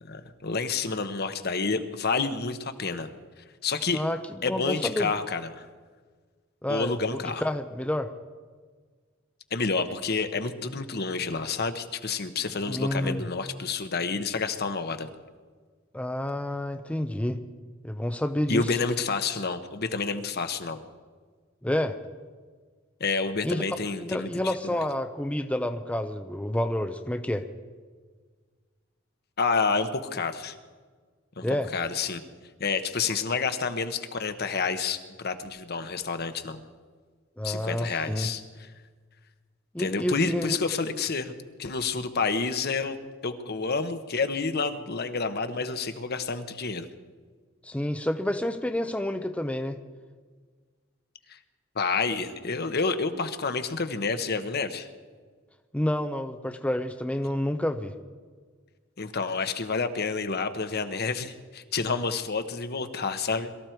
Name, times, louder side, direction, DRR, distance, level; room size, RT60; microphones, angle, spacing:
voice 1, 0.0-3.1 3.6-4.0 4.4-5.7 6.7-7.4 9.5-15.1 18.5-20.8 23.0-24.8 29.4-30.5 31.4-32.2 32.6-36.6 37.4-38.7 39.8-41.3 41.6-43.0 43.2-46.9 51.3-51.4 51.7-54.9 59.0-63.5, left 4 dB, 50° left, 9 dB, 1.1 m, -29 dB
voice 2, 3.9-5.1 6.6-8.1 12.7-13.3 15.9-17.4 17.8-18.8 21.6-22.0 23.4-23.6 24.0-27.4 31.4-31.7 37.4-38.3 39.7-40.6 47.6-49.8 55.7-57.9, left 1 dB, 5° left, 7 dB, 0.6 m, -29 dB
22.5 x 13.5 x 4.6 m, 1.5 s
head